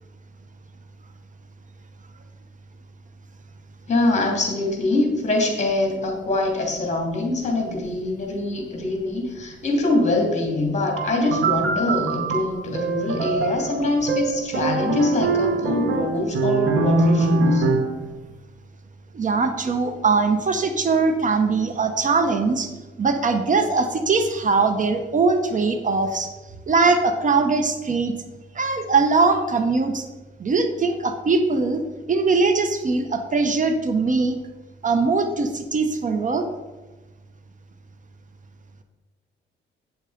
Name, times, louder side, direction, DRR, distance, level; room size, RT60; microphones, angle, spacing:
voice 1, 3.9-17.7, left 2 dB, 35° left, 2 dB, 3.0 m, -24 dB
sound 1, 11.0-18.0, right 3 dB, 75° right, 1.3 m, -23 dB
voice 2, 19.1-22.7 23.0-26.3 26.7-28.1 28.5-30.1 30.4-31.8 32.1-34.4 34.8-36.4, right 4 dB, 40° right, 7 dB, 1.0 m, -21 dB
8.8 x 7.0 x 5.1 m, 1.2 s
cardioid pair, 90°, 20 cm